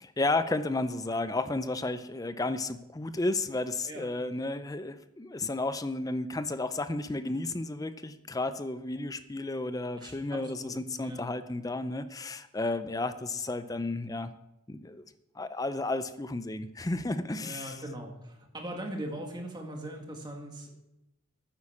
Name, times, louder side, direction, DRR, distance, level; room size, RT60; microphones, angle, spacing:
voice 1, 0.0-14.3 14.7-15.0 15.4-17.8, left 2 dB, 15° left, 11 dB, 0.5 m, -32 dB
voice 2, 10.0-10.7 11.0-11.2 17.4-20.7, right 1 dB, 20° right, 2 dB, 1.9 m, -40 dB
9.8 x 8.5 x 7.2 m, 0.91 s
head